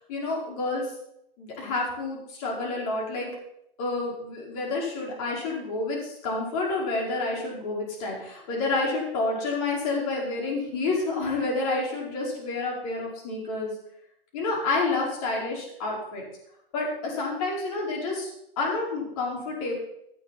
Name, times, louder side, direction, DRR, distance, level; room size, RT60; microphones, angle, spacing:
voice 1, 0.1-0.9 1.4-3.3 3.8-13.7 14.3-16.2 16.7-18.3 18.6-19.7, left 3 dB, 35° left, -3 dB, 5.0 m, -29 dB
16.5 x 8.6 x 4.3 m, 0.77 s
hypercardioid pair, 150°, 30 cm